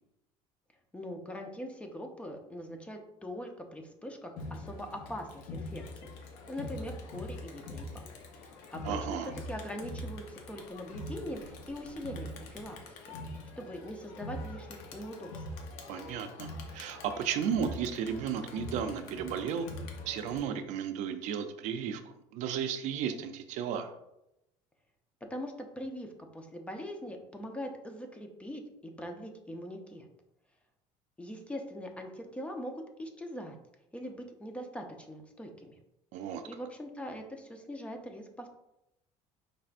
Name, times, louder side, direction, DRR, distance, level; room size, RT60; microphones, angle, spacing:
voice 1, 0.9-6.1 6.5-8.1 8.4-9.0 9.5-12.8 13.0-13.1 13.6-15.4 25.3-30.1 31.2-33.6 33.9-35.8 36.5-38.5, equal, 10° left, 4 dB, 0.6 m, -42 dB
Crowd, 4.4-20.4, left 1 dB, 80° left, 0.8 m, -43 dB
voice 2, 8.8-9.3 15.9-19.7 20.1-22.0 22.3-23.9 36.1-36.4, right 8 dB, 70° right, 8 dB, 0.5 m, -34 dB
5.3 x 3.3 x 2.5 m, 0.85 s
cardioid pair, 125°, 13 cm